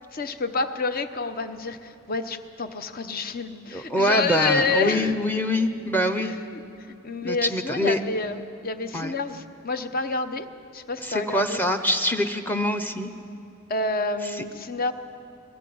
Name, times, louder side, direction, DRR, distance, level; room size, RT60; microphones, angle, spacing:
voice 1, 0.1-5.2 6.2-10.5 10.7-11.6 13.7-14.9, left 3 dB, 45° left, 10 dB, 0.9 m, -29 dB
voice 2, 3.7-6.3 7.2-8.0 8.9-9.1 11.0-13.1, left 1 dB, 10° left, 8 dB, 0.8 m, -24 dB
22.0 x 18.0 x 7.8 m, 2.6 s
head